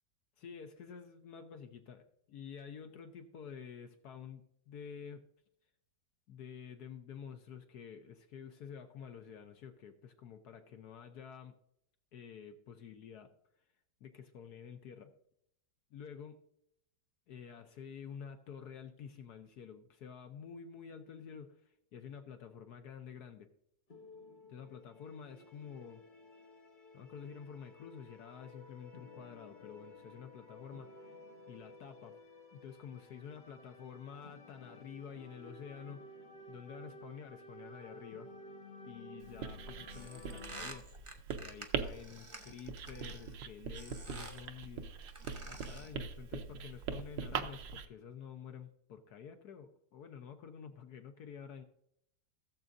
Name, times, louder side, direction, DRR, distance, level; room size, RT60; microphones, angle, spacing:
voice 1, 0.4-5.2 6.3-11.5 12.1-13.3 14.0-15.1 15.9-16.4 17.3-23.5 24.5-26.0 26.9-31.2 31.5-32.2 32.5-36.1 36.5-38.3 38.8-40.9 41.4-44.9 45.5-51.6, left 7 dB, 65° left, 7 dB, 1.2 m, -49 dB
sound 1, 23.9-40.8, left 2 dB, 30° left, 1.1 m, -54 dB
Writing, 39.2-47.9, right 6 dB, 90° right, 1.5 m, -42 dB
sound 2, 39.9-43.3 43.7-44.5 45.0-46.0, right 2 dB, 25° right, 0.8 m, -50 dB
16.0 x 7.4 x 2.6 m, 0.74 s
omnidirectional pair, 2.0 m